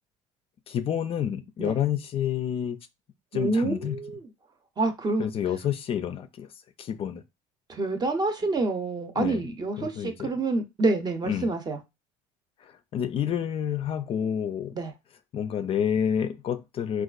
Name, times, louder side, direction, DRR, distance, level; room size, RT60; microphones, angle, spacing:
voice 1, 0.7-2.8 3.3-4.0 5.2-6.5 6.8-7.2 9.1-9.5 9.8-10.3 11.2-11.5 12.6-14.8 15.3-17.0, left 9 dB, 40° left, 0.4 m, -29 dB
voice 2, 3.3-4.2 4.8-5.3 7.7-11.8 14.8-14.9, right 3 dB, 30° right, 0.7 m, -27 dB
4.2 x 2.3 x 2.4 m
cardioid pair, 110°, 15 cm